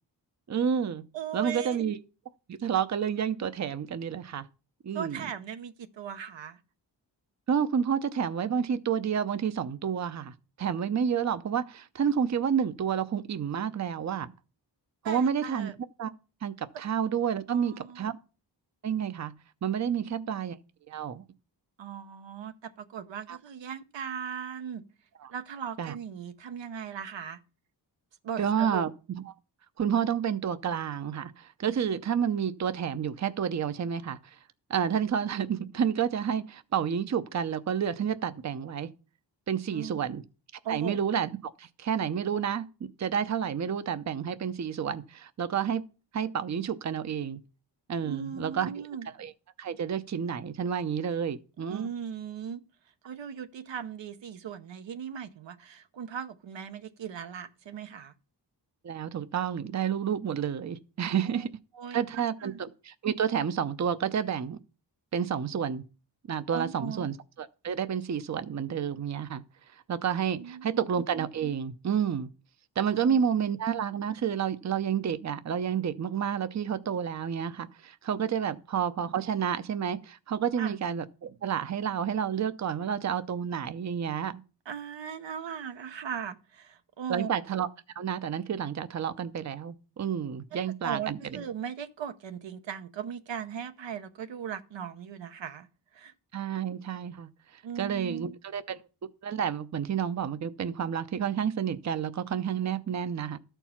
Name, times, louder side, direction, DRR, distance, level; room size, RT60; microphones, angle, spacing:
voice 1, 0.5-1.0 1.3-2.0 2.5-4.5 4.8-5.2 7.5-14.3 15.0-15.7 16.0-16.1 16.4-18.1 18.8-19.3 19.6-20.6 20.9-21.2 23.3-23.4 25.2-25.3 25.8-25.9 28.4-29.2 29.8-34.2 34.7-38.9 39.5-40.2 40.7-45.8 46.1-47.4 47.9-48.7 49.2-49.3 49.6-51.9 58.8-61.5 61.9-64.6 65.1-65.8 66.3-69.4 69.9-72.3 72.8-84.4 87.1-87.7 88.0-91.4 96.3-97.3 97.8-98.8 99.2-103.4, right 8 dB, 40° right, 0.6 m, -30 dB
voice 2, 1.1-1.8 4.9-6.6 15.0-15.8 17.5-18.2 19.9-20.3 21.8-24.8 25.3-27.4 28.2-28.9 39.7-40.2 40.6-41.0 48.0-49.1 51.7-52.6 53.0-58.1 61.2-61.5 61.7-62.6 66.5-67.1 70.3-70.9 72.9-73.2 80.6-80.7 84.7-87.3 90.8-95.7 95.9-96.1 97.6-98.4, right 8 dB, 80° right, 0.9 m, -38 dB
13.0 x 4.6 x 5.7 m
cardioid pair, 80°, 43 cm